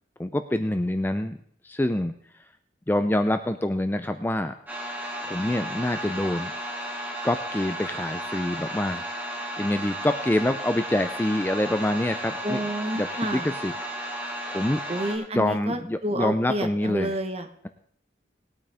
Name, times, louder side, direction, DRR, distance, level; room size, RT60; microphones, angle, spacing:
voice 1, 0.2-1.4 1.6-2.1 2.9-4.5 5.2-6.5 7.2-9.0 9.6-12.7 12.9-13.7 14.5-14.8 15.3-17.2, left 1 dB, 10° left, 9 dB, 0.4 m, -26 dB
sound 1, 4.7-15.2, equal, 10° right, 2.3 m, -34 dB
voice 2, 12.4-13.5 14.9-17.5, right 1 dB, 35° right, 6 dB, 1.1 m, -29 dB
19.5 x 8.8 x 3.5 m, 0.63 s
head